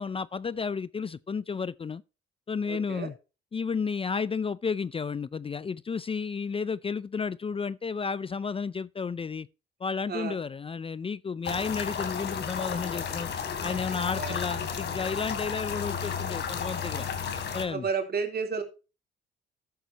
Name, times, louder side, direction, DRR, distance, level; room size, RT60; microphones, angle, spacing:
voice 1, 0.0-2.0 2.5-3.1 3.5-9.5 9.8-13.3 13.6-17.1 17.5-17.9, left 5 dB, 30° left, 0.5 m, -32 dB
voice 2, 2.7-3.1 10.1-10.4 14.1-14.4 17.6-18.6, right 5 dB, 50° right, 3.6 m, -31 dB
sound 1, 11.4-17.6, left 6 dB, 60° left, 3.2 m, -33 dB
13.5 x 9.5 x 3.0 m
cardioid pair, 90°, 20 cm